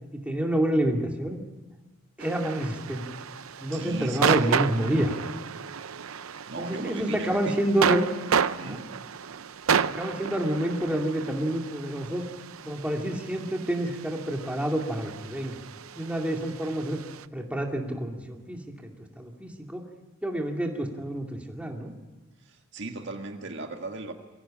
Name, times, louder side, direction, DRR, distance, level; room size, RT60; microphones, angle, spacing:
voice 1, 0.1-1.4 2.2-3.0 3.6-5.1 6.6-8.1 8.6-8.8 9.8-12.2 12.6-15.6 15.9-17.0 17.3-19.8 20.2-21.9, right 1 dB, 5° right, 1 dB, 2.4 m, -28 dB
sound 1, 2.2-17.3, right 6 dB, 85° right, 0.7 m, -31 dB
voice 2, 3.7-4.5 6.1-7.6 8.5-8.9 22.4-24.1, right 3 dB, 60° right, 4 dB, 1.8 m, -38 dB
23.0 x 17.0 x 8.8 m, 1.2 s
head